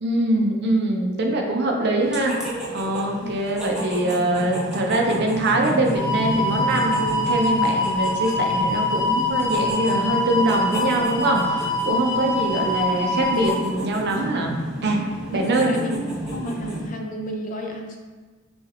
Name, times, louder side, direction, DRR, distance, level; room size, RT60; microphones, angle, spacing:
voice 1, 0.0-14.5 14.8-15.0 15.3-15.7, right 1 dB, 50° right, 1 dB, 0.6 m, -23 dB
sound 1, 2.0-16.9, right 1 dB, 5° right, 0.8 m, -32 dB
sound 2, 5.9-13.5, left 2 dB, 20° left, 1.1 m, -24 dB
voice 2, 15.3-16.0 16.3-18.0, equal, 40° left, 2 dB, 0.5 m, -32 dB
6.2 x 2.4 x 2.9 m, 1.3 s
head